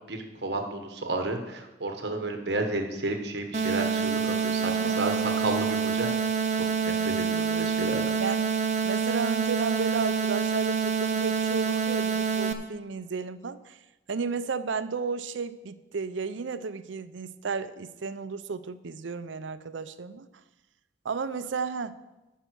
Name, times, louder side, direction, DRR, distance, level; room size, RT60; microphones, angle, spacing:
voice 1, 0.1-6.3 6.8-8.0, right 2 dB, 60° right, 4 dB, 1.2 m, -32 dB
sound 1, 3.5-12.5, right 6 dB, 35° right, 0.7 m, -27 dB
voice 2, 8.2-8.5 8.8-13.8 14.1-20.3 21.0-22.0, right 5 dB, 75° right, 13 dB, 0.5 m, -33 dB
13.0 x 5.6 x 6.3 m, 1.0 s
head